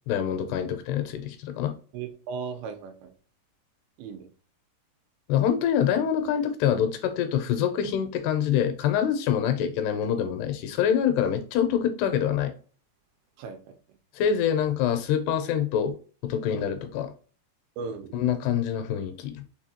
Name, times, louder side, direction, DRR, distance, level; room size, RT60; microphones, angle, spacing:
voice 1, 0.1-1.7 5.3-12.5 14.2-15.9 16.2-17.1 18.1-19.4, left 9 dB, 80° left, 2.6 m, -25 dB
voice 2, 1.9-3.1 4.0-4.3 13.4-13.6 17.8-18.1, right 5 dB, 85° right, 3.1 m, -36 dB
6.8 x 2.7 x 2.8 m
omnidirectional pair, 4.9 m